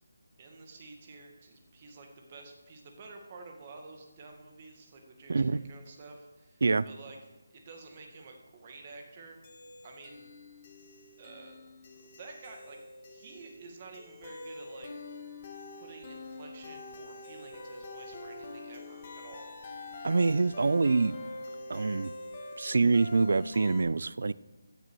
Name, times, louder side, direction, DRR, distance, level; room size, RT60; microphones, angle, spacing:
voice 1, 0.4-9.4 9.8-10.3 11.2-11.6 11.9-12.8 13.1-14.9 15.8-19.5, right 3 dB, 30° right, 3 dB, 1.9 m, -50 dB
voice 2, 5.3-5.6 6.6-6.9 20.0-21.2 21.7-22.1 22.6-24.3, right 3 dB, 65° right, 19 dB, 0.4 m, -25 dB
sound 1, 9.4-23.8, left 2 dB, 30° left, 1.8 m, -46 dB
15.0 x 6.8 x 6.3 m, 1.1 s
figure-of-eight pair, 165°, 0 cm